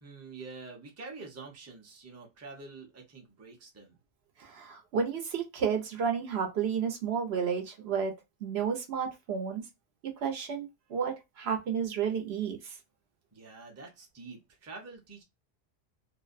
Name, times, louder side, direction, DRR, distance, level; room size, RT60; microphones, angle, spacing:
voice 1, 0.0-3.9 13.3-15.2, right 3 dB, 20° right, 0.5 m, -47 dB
voice 2, 4.4-8.1 8.4-9.6 10.2-12.7, right 6 dB, 70° right, 0.9 m, -31 dB
2.5 x 2.1 x 2.4 m
omnidirectional pair, 1.1 m